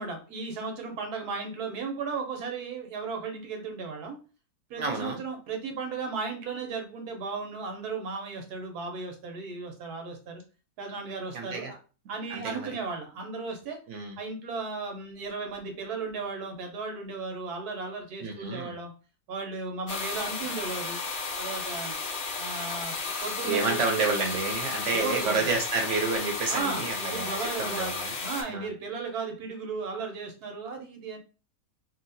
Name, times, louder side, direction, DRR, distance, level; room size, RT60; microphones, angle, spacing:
voice 1, 0.0-4.2 4.7-10.4 10.8-11.8 12.1-13.8 14.2-18.9 19.3-21.0 21.4-22.0 22.4-23.0 23.2-24.0 24.9-25.5 26.5-27.9 28.2-31.2, right 4 dB, 85° right, 3 dB, 1.3 m, -35 dB
voice 2, 4.8-5.2 11.3-11.7 12.3-12.7 13.9-14.2 18.2-18.7 23.5-28.1 28.5-28.7, right 3 dB, 60° right, 3 dB, 0.9 m, -30 dB
sound 1, 19.9-28.4, left 4 dB, 60° left, 0.5 m, -33 dB
2.8 x 2.7 x 2.7 m, 0.35 s
omnidirectional pair, 1.6 m